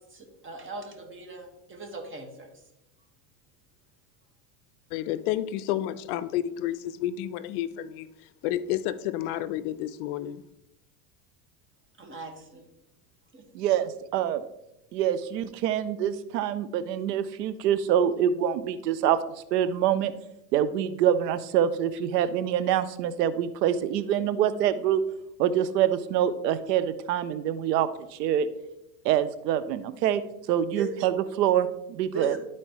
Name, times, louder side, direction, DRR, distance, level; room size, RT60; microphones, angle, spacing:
voice 1, 0.1-2.5 12.0-12.6 13.3-13.5 30.7-30.9 32.1-32.4, right 3 dB, 25° right, 3 dB, 1.6 m, -38 dB
voice 2, 4.9-8.1 8.4-10.4, left 12 dB, 65° left, 16 dB, 0.6 m, -30 dB
voice 3, 13.5-14.4 14.9-19.2 19.5-20.1 20.5-25.0 25.4-27.9 28.2-28.5 29.0-30.2 30.5-32.3, right 10 dB, 85° right, 14 dB, 0.7 m, -25 dB
12.0 x 4.3 x 3.0 m, 0.87 s
hypercardioid pair, 100°, 48 cm